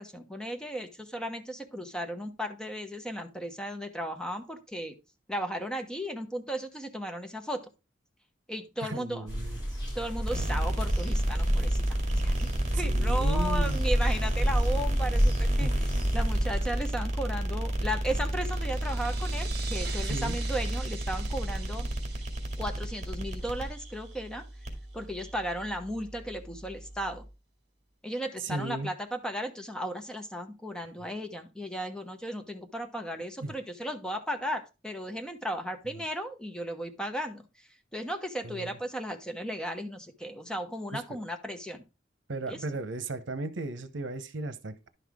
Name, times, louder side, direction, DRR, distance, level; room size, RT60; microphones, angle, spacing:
voice 1, 0.0-4.9 5.3-7.7 8.5-9.3 9.9-11.8 12.2-15.9 16.1-21.9 22.6-24.4 24.9-27.2 28.0-37.4 37.9-41.8 42.5-42.6, equal, 5° left, 1.0 m, -35 dB
voice 2, 8.8-9.6 12.7-13.8 14.4-14.5 15.6-15.7 20.0-20.4 28.4-28.9 33.4-33.5 38.4-38.8 40.9-41.0 42.3-44.9, right 2 dB, 75° right, 0.9 m, -36 dB
sound 1, 9.3-16.9, equal, 20° left, 6.3 m, -29 dB
sound 2, 10.3-27.3, right 1 dB, 40° right, 2.1 m, -31 dB
sound 3, 18.0-24.3, right 7 dB, 60° right, 1.2 m, -45 dB
11.0 x 5.7 x 3.6 m
head